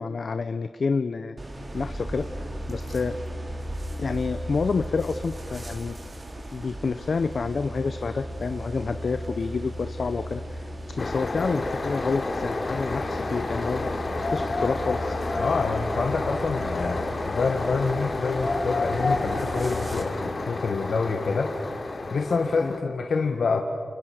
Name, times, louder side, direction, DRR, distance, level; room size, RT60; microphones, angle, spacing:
voice 1, 0.0-1.4 1.7-3.2 4.0-6.0 6.5-13.9 14.3-15.2 22.6-22.7, left 4 dB, 60° left, 10 dB, 0.8 m, -29 dB
sound 1, 1.4-20.0, equal, 35° right, 3.6 m, -36 dB
sound 2, 11.0-22.8, left 2 dB, 45° left, 3.0 m, -30 dB
voice 2, 15.4-21.5 22.1-23.6, left 4 dB, 75° left, 4 dB, 1.7 m, -27 dB
30.0 x 29.5 x 6.5 m, 2.4 s
wide cardioid pair, 100°, 0 cm